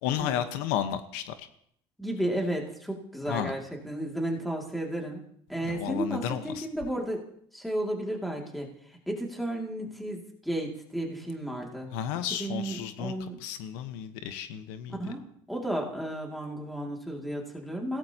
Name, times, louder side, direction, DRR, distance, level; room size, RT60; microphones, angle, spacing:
voice 1, 0.0-1.5 3.3-3.5 5.6-6.6 11.9-13.1 13.4-15.1, left 10 dB, 80° left, 9 dB, 1.1 m, -32 dB
voice 2, 2.0-5.2 5.5-7.2 7.5-11.9 12.4-13.4 14.9-15.2 15.5-18.0, right 1 dB, ahead, 0 dB, 2.5 m, -33 dB
28.5 x 16.5 x 2.9 m, 0.66 s
cardioid pair, 155°, 11 cm